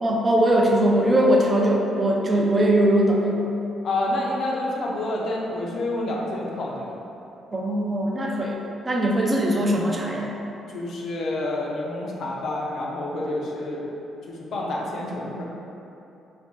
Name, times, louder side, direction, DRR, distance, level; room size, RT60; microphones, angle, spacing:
voice 1, 0.0-3.6 7.5-8.6 8.9-10.3, right 1 dB, 30° right, -1 dB, 0.4 m, -21 dB
voice 2, 3.8-7.0 10.7-13.9 14.3-15.4, left 1 dB, 65° left, -3 dB, 0.5 m, -28 dB
2.5 x 2.2 x 3.8 m, 2.9 s
cardioid pair, 90°, 0 cm